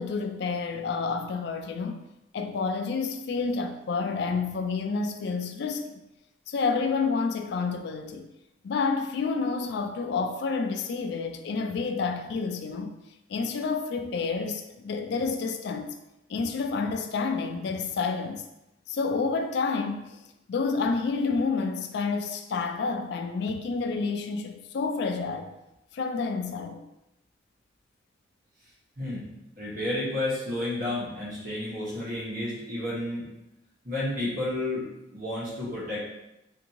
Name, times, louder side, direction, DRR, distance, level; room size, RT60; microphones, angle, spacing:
voice 1, 0.0-2.1 2.3-6.0 6.5-8.3 8.6-12.9 13.3-16.0 16.3-18.5 18.9-20.2 20.5-25.5 25.9-26.8, left 4 dB, 60° left, 0.3 m, -29 dB
voice 2, 29.6-33.2 33.8-34.8 35.1-36.0, left 1 dB, 50° right, 1.4 m, -31 dB
3.4 x 2.7 x 2.8 m
head